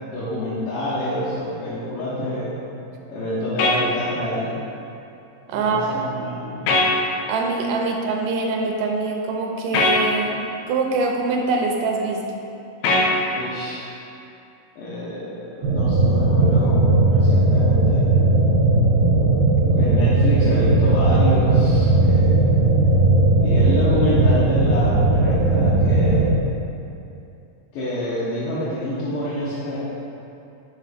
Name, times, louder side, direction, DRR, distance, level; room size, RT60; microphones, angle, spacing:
voice 1, 0.1-2.5 3.1-4.5 5.5-6.6 13.3-13.9 14.8-16.8 17.1-18.0 19.7-22.4 23.4-26.3 27.7-29.8, equal, 75° left, -11 dB, 2.5 m, -27 dB
sound 1, 3.6-3.8 6.7-6.9 9.7-10.0 12.8-13.1, left 2 dB, 90° left, 2.4 m, -18 dB
voice 2, 5.5-5.9 7.3-10.4 10.7-12.2, right 3 dB, 75° right, 1 dB, 2.2 m, -23 dB
sound 2, 15.6-26.3, right 2 dB, 60° right, 2.1 m, -17 dB
6.9 x 3.9 x 5.0 m, 2.7 s
omnidirectional pair, 4.0 m